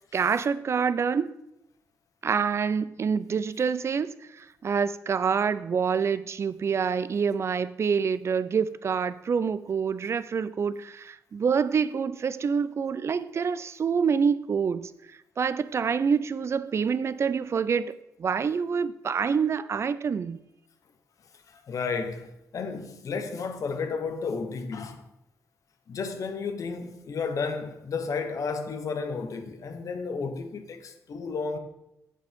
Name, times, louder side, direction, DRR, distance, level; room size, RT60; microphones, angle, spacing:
voice 1, 0.1-1.3 2.2-14.9 15.4-20.4, right 6 dB, 45° right, 0.4 m, -27 dB
voice 2, 21.5-25.1 25.9-31.6, left 4 dB, 60° left, 1.0 m, -32 dB
8.4 x 7.9 x 3.6 m
cardioid pair, 100°, 6 cm